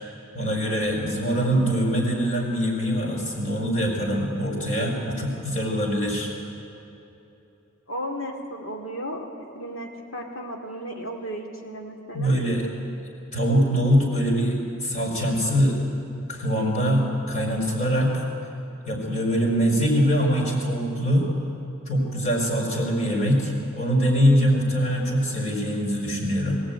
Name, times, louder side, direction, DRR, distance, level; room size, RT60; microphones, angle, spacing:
voice 1, 0.3-6.3 12.1-12.7 13.3-15.8 16.3-18.1 18.9-21.3 21.9-26.6, equal, 40° left, -1 dB, 4.8 m, -23 dB
voice 2, 7.9-9.3 9.5-12.4, equal, 75° left, 2 dB, 3.1 m, -34 dB
22.0 x 16.0 x 9.2 m, 3.0 s
head